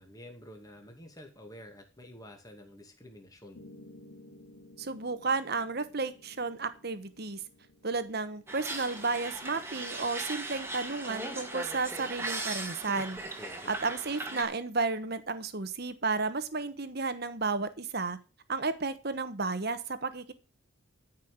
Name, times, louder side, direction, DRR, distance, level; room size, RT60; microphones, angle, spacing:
voice 1, 0.0-3.6 13.4-13.7, left 1 dB, 15° left, 4 dB, 2.3 m, -49 dB
Piano, 3.5-11.6, left 1 dB, 70° left, 2.7 m, -56 dB
voice 2, 4.8-7.4 7.8-13.2 13.7-18.2 18.5-20.3, right 3 dB, 45° right, 12 dB, 1.2 m, -32 dB
sound 1, 8.5-14.4, right 2 dB, 10° right, 1.8 m, -38 dB
13.5 x 5.6 x 6.5 m, 0.34 s
head